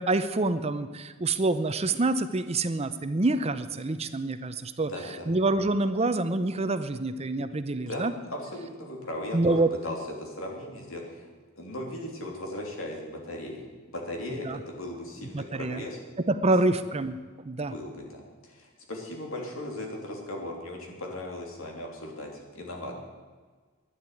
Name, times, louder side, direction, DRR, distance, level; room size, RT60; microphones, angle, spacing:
voice 1, 0.0-4.9 5.3-8.1 9.3-9.7 14.5-14.6 15.3-15.8 16.3-17.1 17.4-17.7, right 2 dB, 30° right, 11 dB, 0.7 m, -26 dB
voice 2, 4.8-5.3 7.9-11.3 11.6-16.0 16.4-16.5 17.6-22.9, left 1 dB, 80° left, 1 dB, 3.2 m, -37 dB
12.0 x 10.0 x 9.1 m, 1.4 s
head